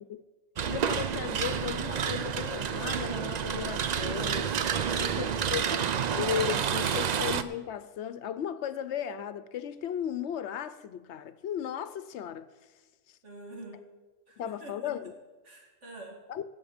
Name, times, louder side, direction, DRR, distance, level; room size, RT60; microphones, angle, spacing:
sound 1, 0.6-7.4, right 7 dB, 55° right, 0.5 m, -29 dB
voice 1, 0.7-4.6 5.0-5.8 6.1-12.5 13.1-13.2 14.4-15.1 16.3-16.4, left 9 dB, 70° left, 0.9 m, -35 dB
voice 2, 4.9-5.6 13.2-13.8 14.3-14.9 15.4-16.2, right 2 dB, 75° right, 2.7 m, -45 dB
18.5 x 7.2 x 5.0 m
omnidirectional pair, 1.2 m